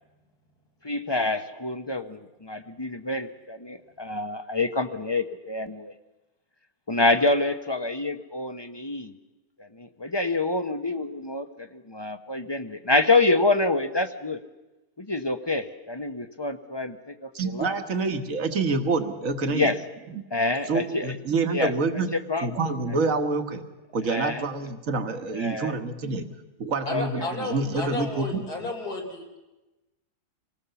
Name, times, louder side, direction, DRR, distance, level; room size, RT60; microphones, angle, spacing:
voice 1, 0.8-5.9 6.9-9.1 9.6-14.4 15.0-17.8 19.5-19.8 20.3-21.2 21.5-21.7 22.1-22.6 23.0-23.1 24.1-24.4 25.3-25.8 26.9-27.3, left 2 dB, 20° left, 10 dB, 0.7 m, -27 dB
voice 2, 17.3-19.7 20.7-23.6 23.9-26.3 26.6-28.7, right 3 dB, 60° right, 8 dB, 1.9 m, -27 dB
voice 3, 26.9-29.4, left 2 dB, 80° left, 1 dB, 3.9 m, -32 dB
25.5 x 18.5 x 7.0 m, 1.0 s
omnidirectional pair, 1.6 m